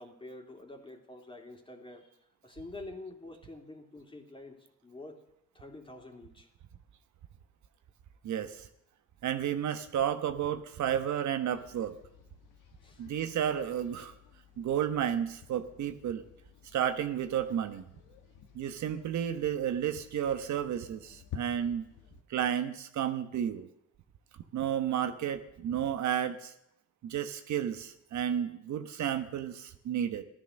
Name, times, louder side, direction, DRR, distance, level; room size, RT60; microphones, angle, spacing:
voice 1, 0.0-2.2 2.4-5.2 5.5-6.5 12.8-13.0, left 2 dB, 15° left, 2 dB, 2.9 m, -47 dB
voice 2, 8.2-8.7 9.2-12.0 13.0-14.1 14.6-16.2 16.7-17.8 18.5-21.8 22.3-23.7 24.5-26.5 27.0-30.2, right 9 dB, 70° right, 8 dB, 1.2 m, -32 dB
sound 1, 11.5-22.2, left 8 dB, 90° left, 1.6 m, -52 dB
15.0 x 12.5 x 6.4 m, 0.79 s
cardioid pair, 90°, 30 cm